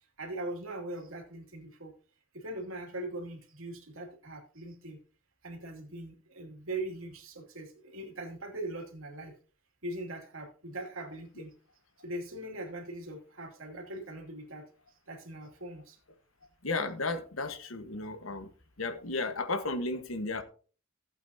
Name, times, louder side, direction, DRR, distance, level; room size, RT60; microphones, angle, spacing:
voice 1, 0.2-1.9 2.3-5.0 5.4-9.3 9.8-11.5 12.0-14.6 15.1-16.0, right 1 dB, 80° right, 2.7 m, -41 dB
voice 2, 16.6-18.5 18.8-20.4, left 3 dB, 80° left, 1.4 m, -34 dB
15.0 x 8.5 x 2.8 m
head